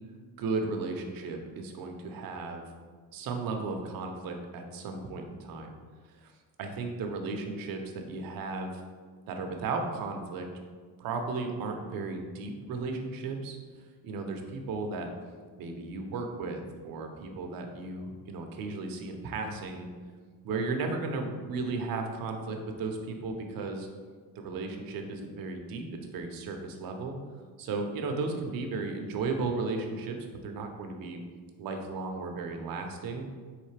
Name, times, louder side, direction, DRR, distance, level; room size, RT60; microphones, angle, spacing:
voice 1, 0.4-2.6 3.1-5.8 6.2-6.3 6.6-8.8 9.3-10.5 11.0-13.6 14.0-15.1 15.6-19.9 20.4-23.9 24.4-27.2 27.6-31.2 31.6-33.3, right 3 dB, 55° right, 4 dB, 0.7 m, -35 dB
4.0 x 3.2 x 3.2 m, 1.5 s
supercardioid pair, 95°, 41 cm